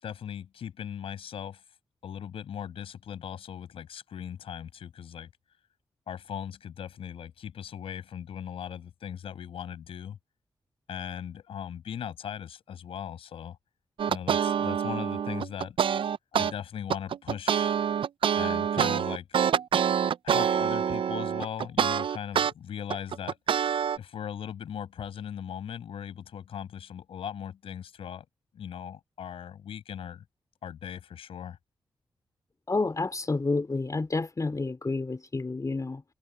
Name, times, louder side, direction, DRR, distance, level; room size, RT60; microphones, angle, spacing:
voice 1, 0.0-1.6 2.0-5.3 6.1-10.2 10.9-13.6 14.1-15.8 16.3-17.7 18.3-19.3 20.2-23.4 24.0-28.3 28.5-30.2 30.6-31.6, left 9 dB, 85° left, 5.9 m, -38 dB
sound 1, 14.0-16.5 16.9-22.5 22.9-24.0, right 8 dB, 65° right, 0.4 m, -26 dB
voice 2, 32.7-36.0, left 3 dB, 40° left, 3.0 m, -29 dB
supercardioid pair, 40°, 9 cm